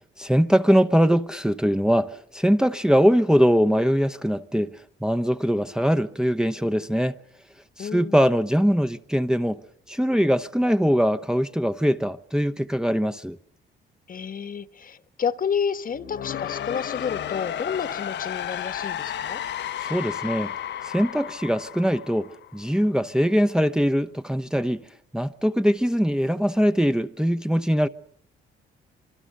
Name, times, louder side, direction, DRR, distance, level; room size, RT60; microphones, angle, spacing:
voice 1, 0.2-4.7 5.0-7.1 7.8-9.6 9.9-13.4 19.8-20.5 20.8-24.8 25.1-27.9, equal, 5° right, 0.9 m, -22 dB
voice 2, 7.8-8.2 14.1-19.4, left 7 dB, 45° left, 1.3 m, -30 dB
sound 1, 15.9-22.8, left 10 dB, 65° left, 1.0 m, -33 dB
26.0 x 23.5 x 6.7 m
cardioid pair, 90°, 20 cm